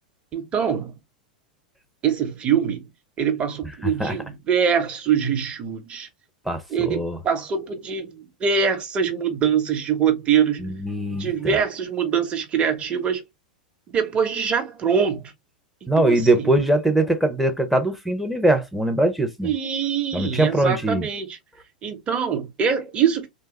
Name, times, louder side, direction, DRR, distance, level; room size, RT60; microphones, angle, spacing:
voice 1, 0.3-0.9 2.0-2.9 3.2-6.1 6.7-10.7 11.1-13.2 13.9-15.3 16.0-16.5 19.4-21.4 21.8-23.3, right 7 dB, 25° right, 1.0 m, -23 dB
voice 2, 3.8-4.1 6.5-7.2 10.6-11.6 15.9-19.5 20.1-21.1, right 1 dB, ahead, 0.7 m, -22 dB
3.3 x 2.3 x 3.0 m
figure-of-eight pair, 90°, 5 cm